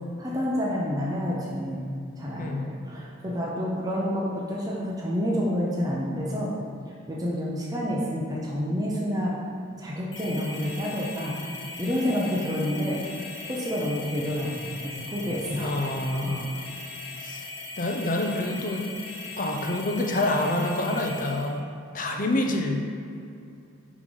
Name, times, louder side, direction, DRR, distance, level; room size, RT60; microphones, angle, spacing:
voice 1, 0.2-1.9 2.2-6.5 7.1-9.3 9.8-11.4 11.8-13.0 13.4-15.8 16.1-16.4, equal, 15° right, -4 dB, 0.7 m, -29 dB
sound 1, 10.1-21.5, left 3 dB, 65° left, 1.4 m, -39 dB
voice 2, 15.5-16.5 17.2-17.4 17.8-18.9 19.4-21.6 21.9-22.8, left 1 dB, 40° left, 2 dB, 0.6 m, -27 dB
5.5 x 4.9 x 5.3 m, 2.6 s
head